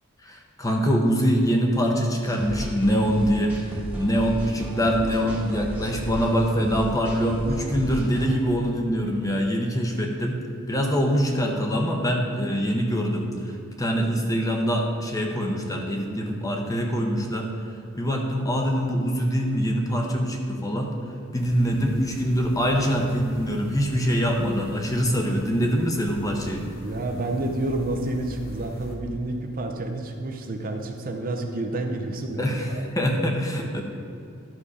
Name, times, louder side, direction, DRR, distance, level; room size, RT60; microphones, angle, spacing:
voice 1, 0.2-17.5 18.0-20.9 21.3-26.6 32.4-33.8, equal, 15° left, 1 dB, 0.8 m, -24 dB
sound 1, 2.2-8.3, right 1 dB, 5° right, 1.3 m, -33 dB
sound 2, 21.3-29.0, equal, 45° left, 1.0 m, -41 dB
voice 2, 26.8-32.8, right 2 dB, 40° right, 4 dB, 0.7 m, -29 dB
10.5 x 5.6 x 4.9 m, 2.6 s
head